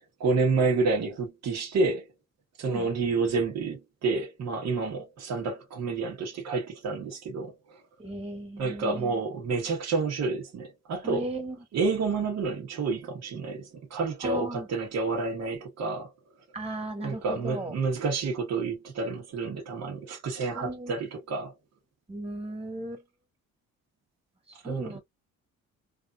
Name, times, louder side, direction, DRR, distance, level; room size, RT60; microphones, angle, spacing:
voice 1, 0.2-2.1 2.6-7.8 8.6-11.3 11.7-16.1 17.0-21.5 24.6-25.0, right 4 dB, 60° right, 1.3 m, -29 dB
voice 2, 8.0-9.1 11.0-11.6 14.2-14.7 16.5-17.7 20.5-20.9 22.1-23.0 24.5-25.0, right 1 dB, 20° right, 1.7 m, -36 dB
3.4 x 2.6 x 2.4 m
cardioid pair, 90°, 30 cm